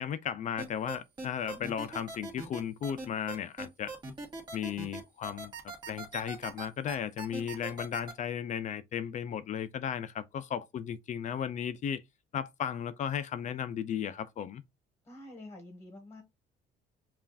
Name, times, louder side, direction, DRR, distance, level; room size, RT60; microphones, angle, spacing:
voice 1, 0.0-3.9 4.5-5.5 5.9-12.0 12.3-14.6, left 8 dB, 45° left, 0.4 m, -35 dB
sound 1, 0.6-8.1, right 3 dB, 25° right, 1.6 m, -41 dB
voice 2, 15.0-16.2, left 1 dB, 15° left, 1.4 m, -48 dB
5.5 x 2.5 x 2.4 m
cardioid pair, 110°, 17 cm